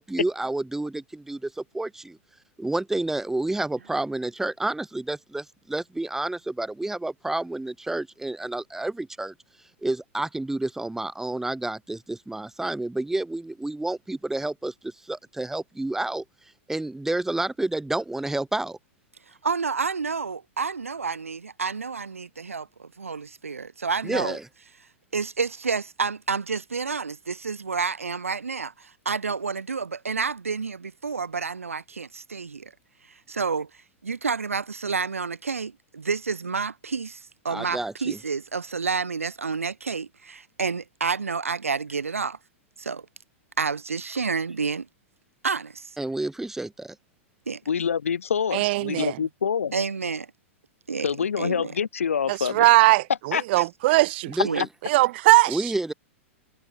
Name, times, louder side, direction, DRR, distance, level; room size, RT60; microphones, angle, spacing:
voice 1, 0.0-2.2 2.6-9.3 9.8-16.2 16.7-18.8 24.0-24.4 37.5-38.2 46.0-47.0 54.3-54.7 55.5-55.9, right 2 dB, 5° right, 1.2 m, -29 dB
voice 2, 19.4-24.4 25.1-32.7 33.3-33.7 34.0-42.4 42.8-43.1 43.6-44.9 45.4-45.9 47.5-47.6 49.7-50.3 50.9-51.1 51.4-51.7 53.6-53.7 54.4-54.6, right 5 dB, 90° right, 1.0 m, -29 dB
voice 3, 47.7-49.7 51.0-52.7 53.3-53.4 54.6-54.7, left 7 dB, 80° left, 1.0 m, -26 dB
voice 4, 48.5-49.2 52.3-54.4 54.8-55.6, right 19 dB, 55° right, 0.7 m, -20 dB
hypercardioid pair, 110°, 7 cm